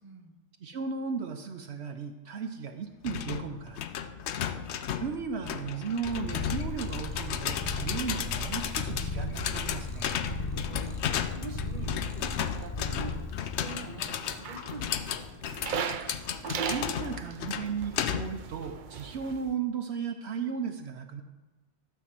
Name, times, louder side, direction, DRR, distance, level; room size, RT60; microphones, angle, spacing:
voice 1, 0.0-0.4 4.7-4.8 10.3-11.1 11.4-13.2 13.6-15.3, right 4 dB, 40° right, 3 dB, 1.2 m, -45 dB
voice 2, 0.6-3.8 5.0-10.0 16.4-21.2, right 6 dB, 75° right, 5 dB, 1.0 m, -35 dB
sound 1, 3.0-18.5, left 9 dB, 80° left, 0.9 m, -34 dB
Purr, 6.0-14.1, left 3 dB, 25° left, 0.6 m, -36 dB
sound 2, 14.2-19.5, right 7 dB, 55° right, 0.6 m, -38 dB
12.5 x 4.6 x 7.4 m, 1.2 s
omnidirectional pair, 1.1 m